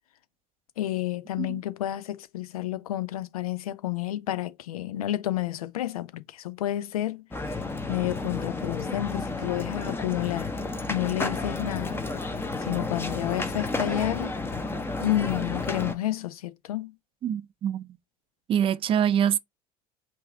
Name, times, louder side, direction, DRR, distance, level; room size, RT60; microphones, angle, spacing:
voice 1, 0.8-7.6 7.9-10.5 10.9-12.0 12.6-14.4 15.0-16.9, left 14 dB, 70° left, 0.5 m, -30 dB
sound 1, 7.3-16.0, left 3 dB, 10° left, 0.7 m, -32 dB
voice 2, 17.2-17.9 18.5-19.4, right 9 dB, 30° right, 0.4 m, -25 dB
5.5 x 2.5 x 3.5 m
figure-of-eight pair, 70°, 19 cm